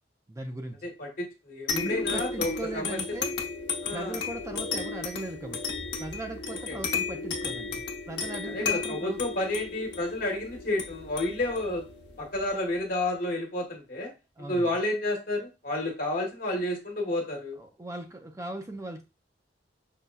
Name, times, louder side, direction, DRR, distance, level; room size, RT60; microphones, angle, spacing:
voice 1, 0.3-0.9 1.7-3.3 3.9-5.6 6.0-9.2 14.4-14.7 17.6-19.0, right 2 dB, 20° right, 0.4 m, -38 dB
voice 2, 0.8-3.0 3.8-4.2 6.7-6.8 8.4-11.9 12.2-14.1 14.5-17.6, left 1 dB, 55° left, 1.2 m, -30 dB
sound 1, 1.7-12.8, left 4 dB, 80° left, 0.8 m, -34 dB
5.4 x 2.2 x 2.2 m
head